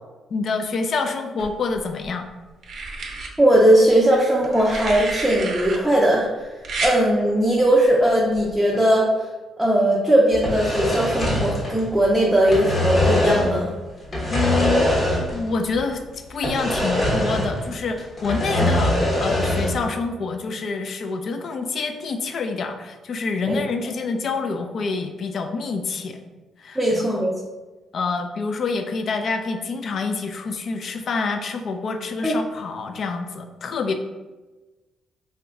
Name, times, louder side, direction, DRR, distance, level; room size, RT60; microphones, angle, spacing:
voice 1, 0.3-2.3 14.3-26.2 26.6-27.1 27.9-33.9, left 4 dB, 55° left, 6 dB, 0.4 m, -27 dB
sound 1, 1.4-2.1 2.6-3.3 4.4-5.8 6.6-7.0 8.3-8.5, right 3 dB, 55° right, 0.7 m, -30 dB
voice 2, 3.4-6.5 6.8-9.3 9.6-13.7 23.5-23.6 26.8-27.3 32.2-32.3, right 1 dB, 5° right, -4 dB, 0.5 m, -19 dB
sound 2, 10.3-12.1 12.3-13.6 14.1-15.5 15.7-15.8 16.4-17.7 18.0-19.8, left 1 dB, 35° left, 1.0 m, -22 dB
2.9 x 2.2 x 3.6 m, 1.2 s
cardioid pair, 90°, 0 cm